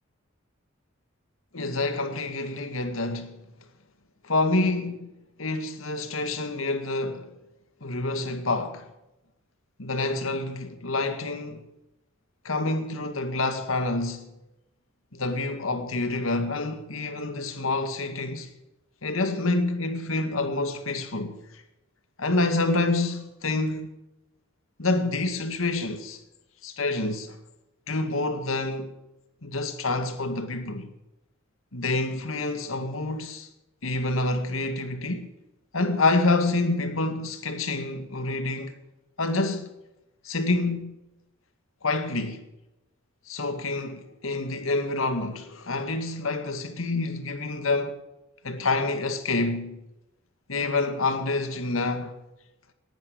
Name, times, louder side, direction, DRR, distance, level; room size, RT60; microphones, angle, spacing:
voice 1, 1.5-3.4 4.2-5.1 5.4-7.3 7.8-8.9 9.8-11.7 12.4-14.3 15.1-18.5 19.0-21.6 22.2-23.9 24.8-26.2 26.6-27.4 27.9-28.9 29.4-30.9 31.7-33.5 33.8-35.3 35.7-38.8 39.2-39.7 40.2-41.0 41.8-42.5 43.3-48.0 48.4-49.8 50.5-52.2, left 2 dB, 80° left, 2.0 m, -27 dB
19.0 x 10.5 x 6.3 m
head